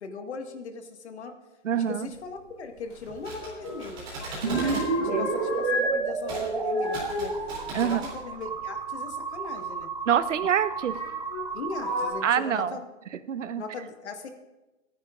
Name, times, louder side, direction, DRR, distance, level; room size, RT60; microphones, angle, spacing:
voice 1, 0.0-1.3 1.7-4.1 4.4-7.3 7.7-9.9 11.5-12.9 13.6-14.3, left 4 dB, 60° left, 5 dB, 1.7 m, -39 dB
voice 2, 1.6-2.1 5.1-5.3 7.7-8.0 10.1-11.0 12.2-12.8 13.1-13.6, right 9 dB, 70° right, 14 dB, 0.7 m, -26 dB
sound 1, 2.9-3.8 4.1-5.9 6.2-8.7 9.8-9.9 10.9-11.4 11.8-12.1, left 2 dB, 30° left, 4.1 m, -33 dB
sound 2, 3.0-4.9 6.2-6.5 6.8-8.1, right 2 dB, 15° right, 2.9 m, -38 dB
sound 3, 4.4-12.3, right 5 dB, 40° right, 1.2 m, -31 dB
25.5 x 10.0 x 2.4 m, 1.1 s
hypercardioid pair, 175°, 38 cm